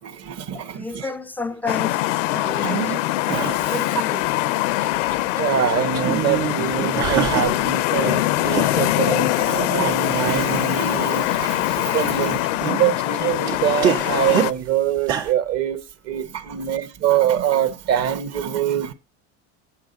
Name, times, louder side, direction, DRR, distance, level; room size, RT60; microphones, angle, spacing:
voice 1, 0.0-1.1 2.6-2.7 3.1-3.8 5.4-15.8 16.0-18.9, right 10 dB, 45° right, 1.3 m, -24 dB
voice 2, 0.5-4.2, left 2 dB, 5° left, 0.5 m, -33 dB
sound 1, 1.7-14.5, left 17 dB, 90° left, 0.6 m, -23 dB
sound 2, 2.6-3.0 3.3-4.3 4.7-5.4 5.7-7.7 8.0-8.9 9.4-9.5 10.1-10.8 11.4-11.8 12.0-14.5 15.0-15.3, right 9 dB, 80° right, 1.9 m, -27 dB
8.6 x 8.0 x 4.0 m
supercardioid pair, 115°, 35 cm